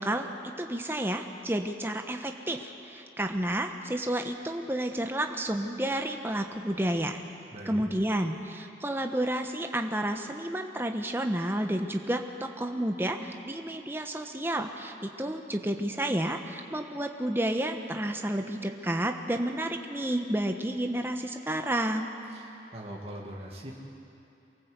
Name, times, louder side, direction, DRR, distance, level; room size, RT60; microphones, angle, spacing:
voice 1, 0.0-7.2 7.6-22.1, right 1 dB, 15° right, 4 dB, 1.0 m, -31 dB
voice 2, 7.5-7.8 22.3-22.4 22.7-23.7, right 1 dB, 35° right, -2 dB, 2.2 m, -40 dB
24.5 x 18.0 x 8.1 m, 2.8 s
head